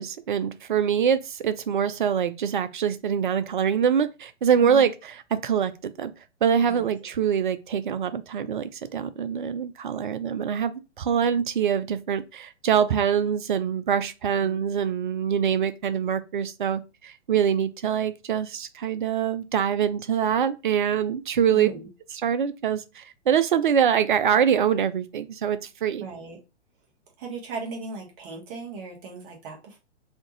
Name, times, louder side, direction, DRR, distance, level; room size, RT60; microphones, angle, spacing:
voice 1, 0.0-4.9 5.3-6.1 6.4-21.7 22.2-26.1, right 8 dB, 45° right, 0.5 m, -24 dB
voice 2, 21.5-21.9 26.0-26.4 27.2-29.8, right 3 dB, 25° right, 1.1 m, -37 dB
3.5 x 2.3 x 3.9 m
figure-of-eight pair, 120°, 35 cm